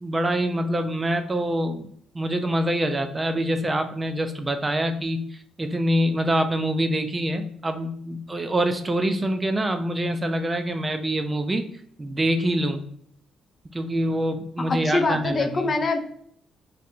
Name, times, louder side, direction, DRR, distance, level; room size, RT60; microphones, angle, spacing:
voice 1, 0.0-1.9 2.1-11.7 12.0-12.8 13.7-15.7, right 1 dB, 20° right, 7 dB, 0.4 m, -25 dB
voice 2, 14.6-16.0, left 3 dB, 40° left, 7 dB, 0.4 m, -24 dB
2.7 x 2.5 x 4.1 m, 0.66 s
cardioid pair, 90°, 0 cm